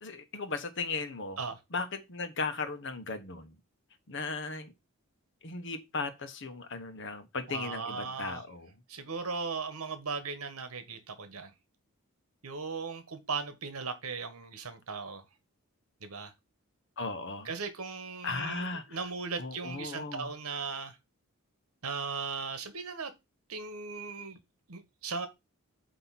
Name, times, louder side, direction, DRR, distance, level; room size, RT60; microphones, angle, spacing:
voice 1, 0.0-1.4 1.7-3.6 4.1-4.7 5.4-8.7 17.0-17.5 18.2-19.0 19.4-20.3, left 3 dB, 55° left, 1.1 m, -36 dB
voice 2, 7.5-8.4 8.9-11.5 12.4-15.2 16.0-16.3 17.4-21.0 21.8-23.1 23.5-24.4 24.7-25.3, right 4 dB, 75° right, 1.3 m, -37 dB
8.1 x 3.0 x 5.8 m
head